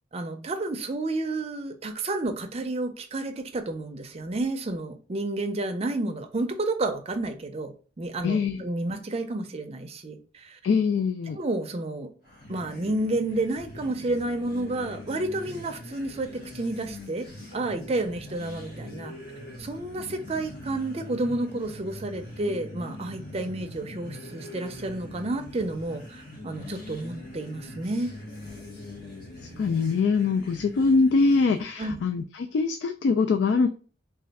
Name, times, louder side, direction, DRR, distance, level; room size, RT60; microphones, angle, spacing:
voice 1, 0.1-7.7 8.0-10.6 11.3-12.1 12.5-17.3 17.5-19.1 19.6-28.2 31.8-32.0, right 2 dB, 35° right, 0.5 m, -30 dB
voice 2, 8.2-8.6 10.6-11.4 29.6-33.7, left 4 dB, 75° left, 0.3 m, -23 dB
sound 1, 12.2-31.7, left 1 dB, 55° left, 1.1 m, -42 dB
3.3 x 2.4 x 4.0 m
head